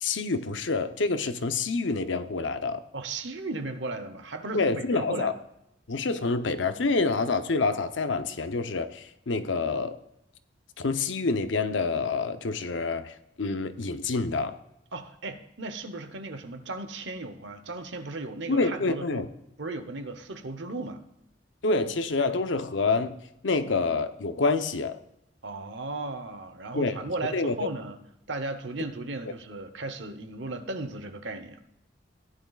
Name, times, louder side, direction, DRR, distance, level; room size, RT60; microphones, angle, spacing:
voice 1, 0.0-2.8 4.5-5.3 5.9-10.0 10.8-14.6 18.5-19.3 21.6-23.2 23.4-25.0 26.7-27.0 27.3-27.5, left 3 dB, 80° left, 10 dB, 0.7 m, -27 dB
voice 2, 2.9-5.4 14.9-19.2 19.6-21.0 25.4-28.0 28.3-31.6, right 2 dB, 70° right, 9 dB, 0.9 m, -36 dB
15.5 x 10.5 x 2.4 m, 0.83 s
head